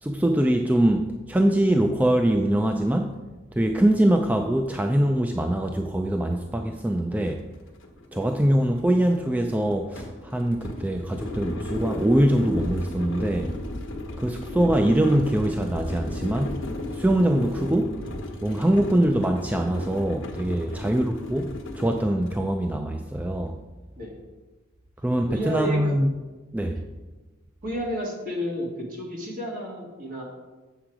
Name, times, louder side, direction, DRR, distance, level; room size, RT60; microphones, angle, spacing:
voice 1, 0.0-3.2 3.5-7.4 8.1-13.6 14.2-16.6 16.9-18.0 18.4-23.6 25.0-26.1 26.5-26.8, right 1 dB, 10° right, 4 dB, 0.3 m, -23 dB
sound 1, 7.3-7.4 7.7-22.4, left 1 dB, 65° left, 1.1 m, -35 dB
voice 2, 25.3-25.9 26.7-26.8 27.6-30.2, equal, 45° right, -2 dB, 2.2 m, -32 dB
7.5 x 6.9 x 4.8 m, 1.2 s
head